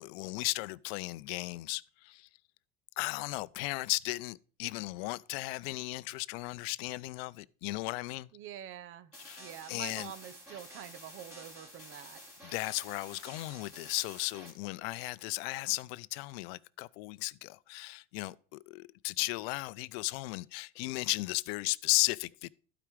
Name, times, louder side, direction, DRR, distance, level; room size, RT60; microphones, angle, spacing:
voice 1, 0.0-2.3 3.0-8.3 9.2-10.1 12.4-22.5, left 22 dB, 70° left, 0.5 m, -35 dB
voice 2, 8.3-9.1 9.4-12.2, right 11 dB, 40° right, 0.8 m, -46 dB
sound 1, 9.1-14.5, equal, 10° right, 3.0 m, -50 dB
12.0 x 5.0 x 4.9 m
supercardioid pair, 120°, 31 cm